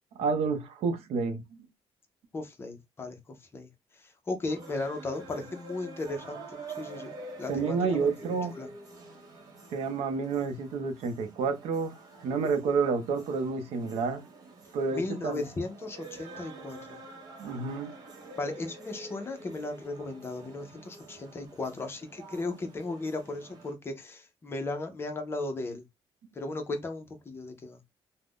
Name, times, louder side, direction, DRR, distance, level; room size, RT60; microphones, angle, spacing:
voice 1, 0.2-1.4 7.5-8.5 9.7-14.2 14.7-15.4 17.4-17.9, right 5 dB, 80° right, 0.6 m, -29 dB
voice 2, 2.3-3.7 3.9-8.1 8.6-8.7 14.9-17.0 18.4-25.8 26.3-27.8, left 2 dB, 25° left, 0.6 m, -36 dB
sound 1, 4.5-23.7, right 2 dB, 40° right, 0.8 m, -47 dB
2.4 x 2.1 x 3.4 m
cardioid pair, 160°, 10 cm